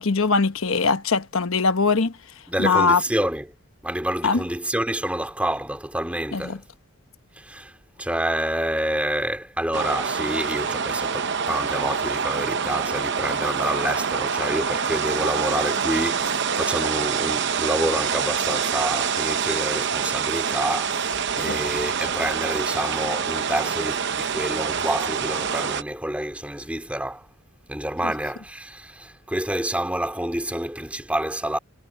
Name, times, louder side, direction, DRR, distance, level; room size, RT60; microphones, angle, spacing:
voice 1, 0.0-2.1 2.6-3.0 4.2-4.4 6.3-6.6 21.5-21.6, left 4 dB, 70° left, 1.1 m, -21 dB
voice 2, 2.5-3.5 3.8-6.6 7.4-7.7 8.0-27.3 27.7-31.6, right 1 dB, 5° right, 3.0 m, -28 dB
sound 1, 9.7-25.8, right 6 dB, 55° right, 0.8 m, -26 dB
head